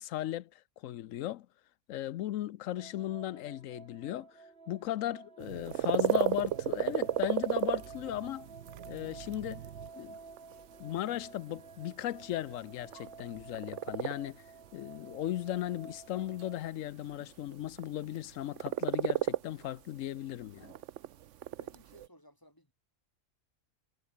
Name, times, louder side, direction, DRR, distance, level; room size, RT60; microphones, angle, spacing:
voice 1, 0.0-1.5 1.9-8.5 8.9-9.6 10.0-10.2 10.8-14.4 14.7-20.7, left 13 dB, 85° left, 1.0 m, -37 dB
sound 1, 2.7-16.6, right 4 dB, 45° right, 2.2 m, -52 dB
sound 2, 5.4-22.1, right 11 dB, 70° right, 1.0 m, -35 dB
voice 2, 21.6-22.7, equal, 15° left, 7.2 m, -59 dB
omnidirectional pair, 1.3 m